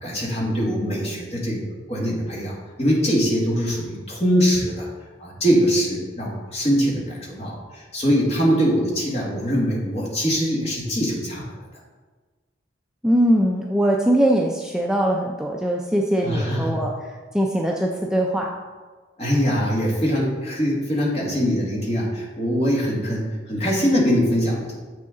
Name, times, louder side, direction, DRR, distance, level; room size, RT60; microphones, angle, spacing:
voice 1, 0.0-1.6 1.9-2.5 2.8-4.9 5.2-7.6 7.9-11.4 16.2-16.8 19.2-24.7, equal, 35° left, -4 dB, 1.9 m, -22 dB
voice 2, 13.0-18.5, right 1 dB, 5° right, -1 dB, 0.4 m, -21 dB
7.5 x 6.3 x 3.8 m, 1.4 s
head